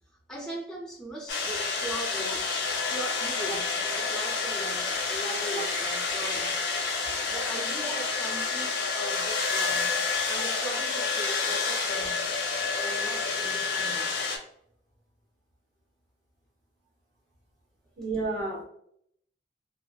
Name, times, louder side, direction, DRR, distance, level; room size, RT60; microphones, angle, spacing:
voice 1, 0.3-2.4 2.9-6.5 7.3-10.0 10.3-12.3 12.7-14.2, right 1 dB, 5° left, 0.4 m, -39 dB
sound 1, 1.3-14.4, left 4 dB, 75° left, 0.7 m, -29 dB
voice 2, 1.9-2.3 3.5-3.6 5.2-5.3 6.2-6.3 18.0-18.6, right 3 dB, 85° right, 1.4 m, -33 dB
3.0 x 2.4 x 2.3 m
head